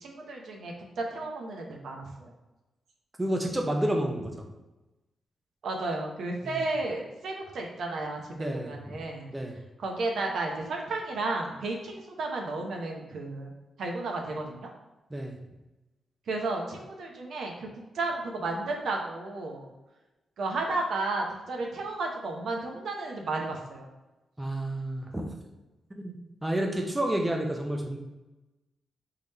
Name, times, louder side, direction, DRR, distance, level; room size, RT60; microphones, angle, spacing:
voice 1, 0.0-2.3 5.6-9.3 9.8-13.5 13.8-14.7 16.3-17.7 17.9-19.7 20.4-23.9, right 2 dB, 70° right, 0 dB, 0.9 m, -33 dB
voice 2, 3.2-4.3 6.4-6.6 8.4-9.0 9.3-9.6 15.1-15.4 24.4-25.2 25.9-26.1 26.4-28.0, right 1 dB, 10° right, 1 dB, 0.5 m, -30 dB
3.8 x 3.4 x 4.1 m, 1.1 s
wide cardioid pair, 135°, 0 cm